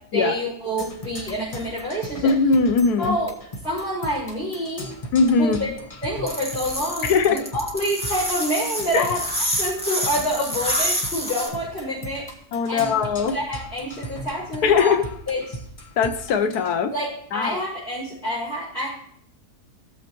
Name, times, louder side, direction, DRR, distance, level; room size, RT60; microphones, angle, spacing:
voice 1, 0.1-2.3 3.0-3.3 3.6-4.9 5.4-5.7 6.0-12.3 12.7-12.9 13.2-15.0 15.3-15.6 16.9-18.9, equal, 45° left, -11 dB, 5.4 m, -27 dB
Percussion, 0.8-16.8, equal, 25° left, 1.0 m, -38 dB
voice 2, 2.2-3.2 5.1-5.6 7.0-7.4 8.9-9.0 12.5-13.3 14.6-15.0 16.0-16.9 17.3-17.6, left 5 dB, 85° left, 9 dB, 1.3 m, -20 dB
sound 1, 6.3-11.5, equal, 5° left, 2.0 m, -27 dB
17.0 x 7.2 x 3.0 m, 0.65 s
omnidirectional pair, 1.6 m